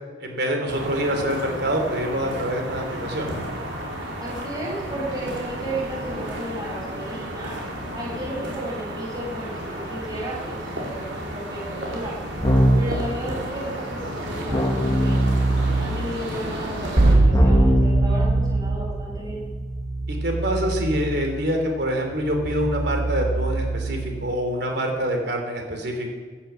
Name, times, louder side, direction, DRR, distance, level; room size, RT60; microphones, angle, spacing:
voice 1, 0.2-3.3 20.1-26.1, equal, 60° right, 3 dB, 3.6 m, -25 dB
sound 1, 0.7-17.1, equal, 90° right, 4.4 m, -33 dB
voice 2, 4.2-7.5 7.9-11.1 11.3-12.2 12.7-15.3 15.8-19.4, right 1 dB, 20° right, -5 dB, 6.5 m, -33 dB
Keyboard (musical), 12.4-13.0 14.5-16.1 17.3-24.3, right 1 dB, 20° left, 1.9 m, -23 dB
sound 2, 17.0-19.8, right 1 dB, 45° right, 2.1 m, -20 dB
16.5 x 11.0 x 7.3 m, 1.5 s
head